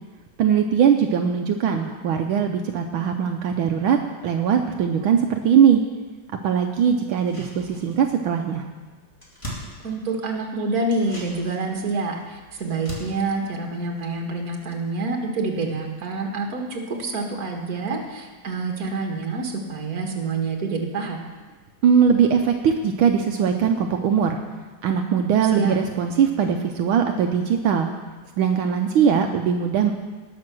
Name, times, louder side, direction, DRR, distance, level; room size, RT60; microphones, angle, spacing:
voice 1, 0.4-5.8 6.4-8.7 21.8-24.4 24.8-27.9 28.4-29.9, right 7 dB, 80° right, 4 dB, 1.6 m, -20 dB
sound 1, 7.1-8.2 8.5-8.6 8.9-10.4 10.8-14.6 14.9-15.0, equal, 15° left, 2.5 m, -41 dB
voice 2, 9.8-21.3 25.4-25.8, right 3 dB, 50° right, 2 dB, 2.0 m, -27 dB
19.0 x 6.7 x 6.2 m, 1.3 s
omnidirectional pair, 2.2 m